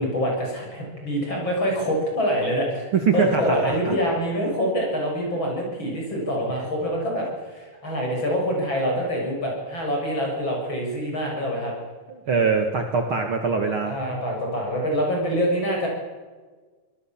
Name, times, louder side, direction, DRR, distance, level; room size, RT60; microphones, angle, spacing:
voice 1, 0.0-11.7 13.8-15.9, equal, 35° left, 0 dB, 7.4 m, -25 dB
voice 2, 2.9-3.9 12.1-14.0, right 5 dB, 45° right, 4 dB, 2.4 m, -23 dB
25.5 x 19.0 x 7.3 m, 1.4 s
omnidirectional pair, 3.6 m